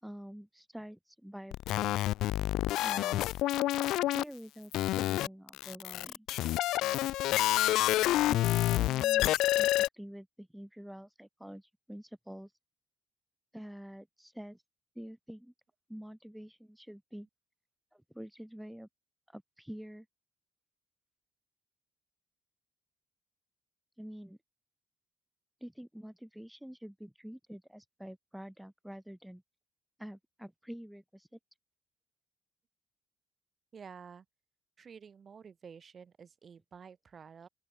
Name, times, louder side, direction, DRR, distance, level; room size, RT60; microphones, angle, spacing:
voice 1, 0.0-2.1 2.8-3.3 4.1-6.3 8.3-12.5 13.5-14.6 14.9-15.5 15.9-17.3 17.9-18.9 19.3-20.1 24.0-24.4 25.6-29.4 30.0-31.4, equal, 5° right, 5.0 m, -47 dB
sound 1, 1.5-4.2 4.7-9.9, left 15 dB, 75° left, 1.0 m, -28 dB
voice 2, 33.7-34.2 34.8-37.5, right 6 dB, 50° right, 4.7 m, -51 dB
open air
supercardioid pair, 55°, 0 cm